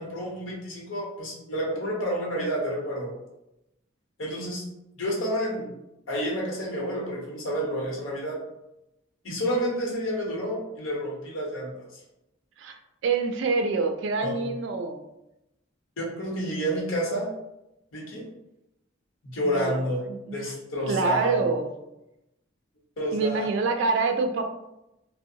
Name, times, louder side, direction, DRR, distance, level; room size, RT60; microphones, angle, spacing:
voice 1, 0.0-3.1 4.2-4.6 5.0-5.7 6.1-8.4 9.2-12.0 14.2-14.4 16.0-17.3 17.9-18.2 19.3-21.5 23.0-23.5, equal, 85° left, -3 dB, 0.8 m, -29 dB
voice 2, 12.6-15.0 19.4-20.5 20.9-21.7 23.1-24.4, right 4 dB, 65° right, 5 dB, 0.3 m, -26 dB
2.7 x 2.0 x 2.6 m, 0.89 s
head